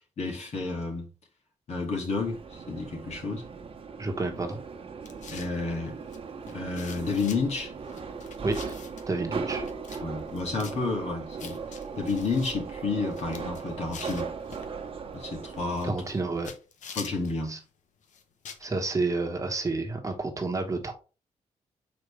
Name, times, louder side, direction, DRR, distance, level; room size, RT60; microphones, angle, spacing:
voice 1, 0.2-1.1 1.7-3.4 5.3-6.0 6.5-7.7 10.0-11.6 12.0-14.3 15.1-15.9 17.0-17.6, left 3 dB, 60° left, 2.2 m, -31 dB
Subway metro underground, 2.2-16.5, right 5 dB, 50° right, 1.2 m, -38 dB
voice 2, 4.0-4.6 8.4-8.7 9.1-9.6 15.8-16.5 17.5-17.6 18.6-20.9, right 3 dB, 25° right, 1.3 m, -30 dB
sound 1, 5.0-5.6 6.1-6.2 6.5-7.4 7.9-9.1 9.6-10.0 10.3-10.8 11.4-12.5 13.0-14.7 15.5-16.2 16.4-17.4 18.0-18.7, left 6 dB, 80° left, 1.0 m, -45 dB
6.6 x 5.0 x 3.3 m
wide cardioid pair, 130°, 13 cm